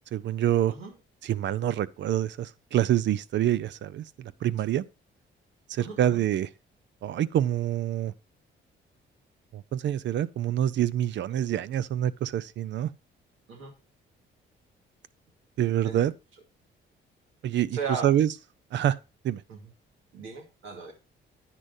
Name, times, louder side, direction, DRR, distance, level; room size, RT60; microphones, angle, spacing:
voice 1, 0.1-0.7 1.2-4.8 5.7-6.5 7.0-8.1 9.5-12.9 15.6-16.1 17.4-17.8 18.0-18.3 18.7-19.0 19.2-19.4, right 11 dB, 65° right, 0.6 m, -26 dB
voice 2, 5.8-6.2 11.3-11.5 13.5-13.7 15.8-16.0 17.7-18.1 19.5-19.6 20.1-20.9, right 5 dB, 80° right, 2.4 m, -37 dB
10.0 x 9.1 x 2.6 m
cardioid pair, 90°, 20 cm